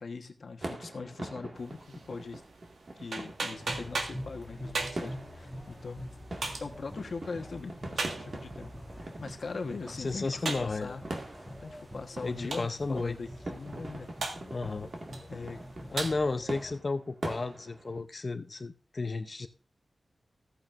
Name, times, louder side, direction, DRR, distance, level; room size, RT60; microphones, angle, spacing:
voice 1, 0.0-2.4 3.0-6.0 6.6-8.7 9.2-11.0 11.6-14.1 15.3-15.6, left 4 dB, 60° left, 1.3 m, -41 dB
sound 1, 0.6-18.0, right 2 dB, 45° right, 2.0 m, -44 dB
sound 2, 1.6-16.1, right 3 dB, 85° right, 1.7 m, -41 dB
sound 3, 3.6-16.8, equal, 10° right, 2.4 m, -46 dB
voice 2, 10.0-11.0 12.2-13.2 14.5-14.9 15.8-19.5, left 3 dB, 40° left, 0.7 m, -33 dB
14.5 x 9.0 x 2.6 m
wide cardioid pair, 120°, 0 cm